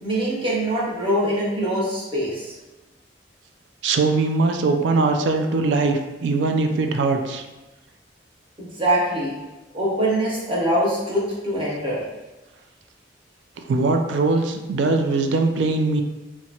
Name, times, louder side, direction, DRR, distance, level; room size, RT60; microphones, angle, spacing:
voice 1, 0.0-2.5 8.6-9.3 9.7-12.0, right 1 dB, 30° right, -6 dB, 0.8 m, -23 dB
voice 2, 3.8-7.5 13.7-16.0, right 3 dB, 70° right, 5 dB, 0.3 m, -21 dB
2.8 x 2.2 x 2.7 m, 1.1 s
head